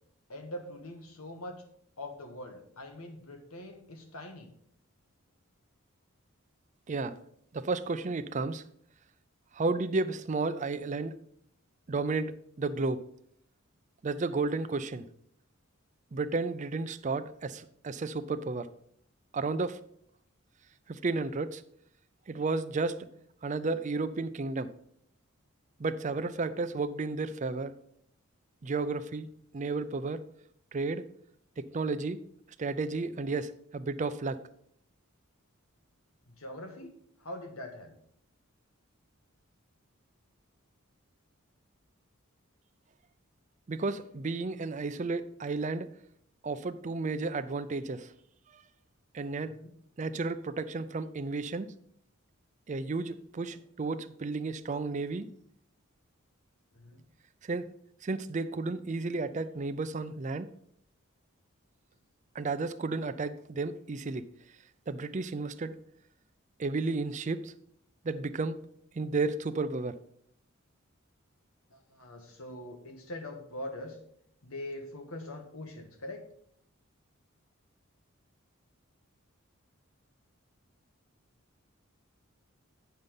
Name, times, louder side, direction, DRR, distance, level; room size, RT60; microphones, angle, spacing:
voice 1, 0.3-1.6 2.0-4.5 36.3-38.0 49.4-49.7 53.5-53.6 56.7-57.0 71.7-74.0 74.4-76.3, left 1 dB, 85° left, 4 dB, 1.7 m, -43 dB
voice 2, 7.5-8.6 9.5-11.2 11.9-13.0 14.0-15.0 16.1-18.7 19.3-19.8 20.9-21.6 22.3-23.1 23.4-24.7 25.8-27.7 28.6-29.3 29.5-30.2 30.7-31.0 31.6-32.2 32.6-34.4 43.7-45.9 46.4-48.1 49.1-49.6 50.0-51.7 52.7-55.3 57.5-57.7 58.0-60.5 62.3-64.2 64.9-65.8 66.6-67.5 68.0-68.6 68.9-69.9, right 3 dB, 35° right, 11 dB, 0.4 m, -32 dB
9.3 x 5.6 x 5.2 m, 0.68 s
head